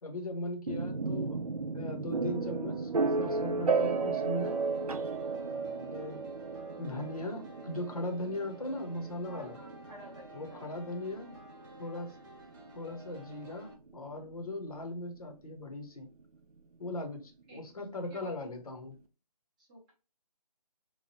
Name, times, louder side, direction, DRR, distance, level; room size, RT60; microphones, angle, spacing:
voice 1, 0.0-1.4 1.7-2.9 3.2-4.6 5.4-6.2 6.8-9.6 10.3-11.4 11.8-12.2 12.7-16.1 16.8-19.0, left 1 dB, 60° left, 4 dB, 0.9 m, -39 dB
sound 1, 0.7-14.4, right 4 dB, 65° right, 0.5 m, -34 dB
sound 2, 4.1-13.7, equal, 25° right, 0.9 m, -53 dB
voice 2, 9.2-10.7 17.5-17.7 18.1-18.3 19.6-19.9, equal, 10° right, -5 dB, 0.6 m, -50 dB
3.1 x 2.2 x 2.8 m, 0.31 s
figure-of-eight pair, 155°, 21 cm